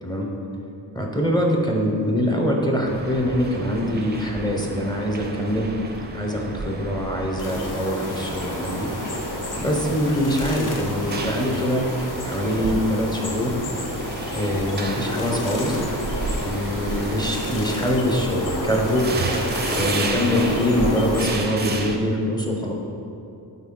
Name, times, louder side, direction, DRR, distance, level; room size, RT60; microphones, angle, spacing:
voice 1, 0.9-5.7 6.1-8.9 9.6-11.9 12.2-13.6 14.3-15.8 16.4-19.1 19.7-22.7, equal, 10° left, -1 dB, 0.7 m, -24 dB
sound 1, 2.9-22.0, right 3 dB, 25° right, 0.4 m, -32 dB
sound 2, 7.4-21.2, left 1 dB, 50° left, 0.9 m, -30 dB
8.1 x 4.4 x 3.8 m, 2.7 s
wide cardioid pair, 145°, 42 cm